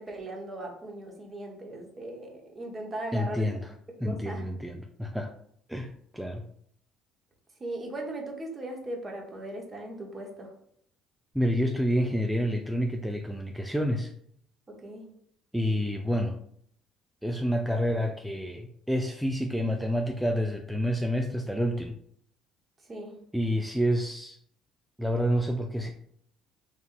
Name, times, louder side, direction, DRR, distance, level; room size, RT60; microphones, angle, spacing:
voice 1, 0.0-3.4 4.0-4.5 7.6-10.5 14.7-15.1 22.9-23.1, right 1 dB, 35° right, 1 dB, 0.9 m, -38 dB
voice 2, 3.1-3.6 4.0-5.3 5.7-6.4 11.3-14.1 15.5-16.3 17.2-22.0 23.3-24.4 25.0-25.9, equal, 5° right, 3 dB, 0.3 m, -28 dB
3.2 x 2.6 x 2.4 m, 0.66 s
hypercardioid pair, 60°, 0 cm